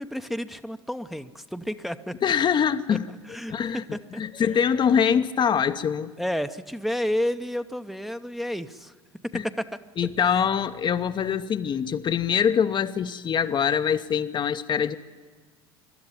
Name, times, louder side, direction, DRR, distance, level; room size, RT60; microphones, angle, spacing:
voice 1, 0.0-2.3 3.3-4.2 6.2-8.9 9.2-9.7, equal, ahead, 8 dB, 0.8 m, -31 dB
voice 2, 2.2-3.1 3.5-6.1 9.3-9.4 10.0-15.0, left 7 dB, 35° left, 10 dB, 0.8 m, -24 dB
24.0 x 12.5 x 9.8 m, 1.5 s
figure-of-eight pair, 65°, 14 cm